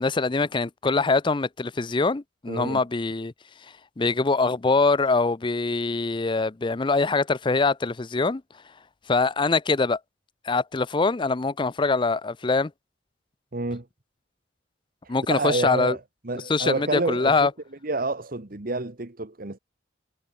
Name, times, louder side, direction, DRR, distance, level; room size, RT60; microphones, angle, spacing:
voice 1, 0.0-3.3 4.0-8.4 9.1-10.0 10.4-12.7 15.1-16.0 16.5-17.5, left 3 dB, 25° left, 0.5 m, -23 dB
voice 2, 2.5-2.8 13.5-13.9 15.0-17.5 17.8-19.6, right 2 dB, 50° right, 1.4 m, -29 dB
head